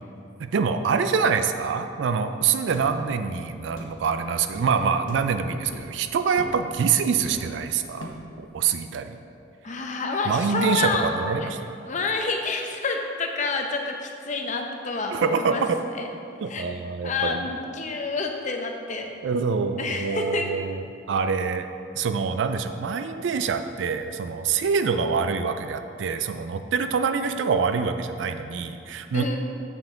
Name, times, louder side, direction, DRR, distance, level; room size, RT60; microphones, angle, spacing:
voice 1, 0.4-8.1 8.4-9.2 10.3-11.6 15.1-15.8 16.4-17.4 19.2-21.7 22.0-29.3, right 5 dB, 65° right, 9 dB, 0.3 m, -25 dB
sound 1, 2.7-2.9 3.8-4.0 4.5-4.7 5.1-5.3 5.7-6.0 6.4-6.6 7.2-7.6 8.0-8.3, left 1 dB, 80° left, 1.0 m, -39 dB
voice 2, 9.6-11.1 11.4-11.5 11.9-15.7 16.0-16.1 16.5-16.6 17.0-19.1 19.8-20.5 29.1-29.4, left 3 dB, 40° left, 3 dB, 0.6 m, -28 dB
6.9 x 5.8 x 3.8 m, 2.6 s
head